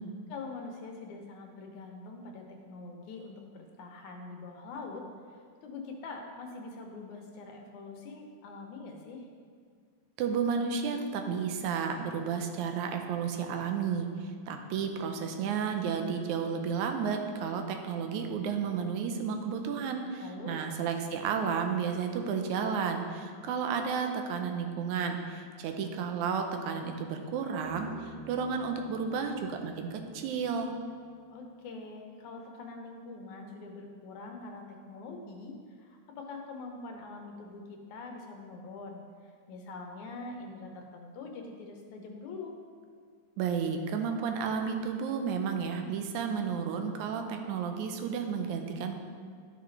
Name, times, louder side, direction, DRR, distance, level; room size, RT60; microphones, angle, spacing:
voice 1, 0.3-5.1 5.6-9.3 20.2-20.6 31.3-42.6, left 3 dB, 80° left, 2 dB, 2.3 m, -44 dB
voice 2, 10.2-14.1 14.5-30.7 43.4-49.0, right 6 dB, 85° right, 5 dB, 2.1 m, -32 dB
Bass guitar, 27.6-31.2, right 3 dB, 50° right, 3.2 m, -49 dB
11.5 x 6.1 x 3.2 m, 2.1 s
omnidirectional pair, 3.4 m